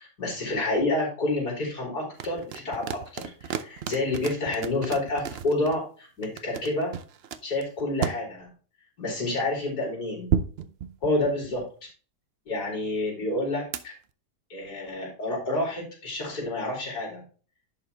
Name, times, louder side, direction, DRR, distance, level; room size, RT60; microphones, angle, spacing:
voice 1, 0.0-6.9 7.4-8.5 9.0-10.3 11.0-11.6 12.5-13.9 14.5-17.2, left 2 dB, 60° left, -2 dB, 4.1 m, -29 dB
sound 1, 2.2-5.8 6.2-8.2 10.3-11.7 13.7-13.8, right 8 dB, 80° right, 0.5 m, -31 dB
10.5 x 5.6 x 3.3 m, 0.39 s
omnidirectional pair, 1.9 m